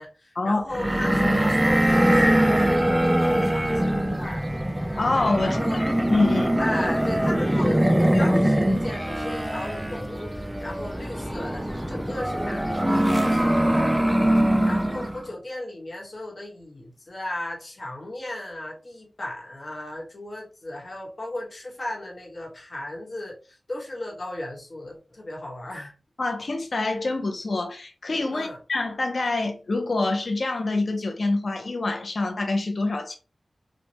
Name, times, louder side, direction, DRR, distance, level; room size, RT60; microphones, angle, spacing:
voice 1, 0.0-4.4 5.4-5.9 6.6-25.9 28.3-28.6, left 1 dB, 50° left, 1.1 m, -36 dB
sound 1, 0.7-15.2, right 1 dB, 10° right, 0.4 m, -22 dB
voice 2, 5.0-5.8 6.1-6.6 26.2-33.2, left 2 dB, 65° left, 0.5 m, -26 dB
3.1 x 2.1 x 2.7 m
wide cardioid pair, 70°, 0 cm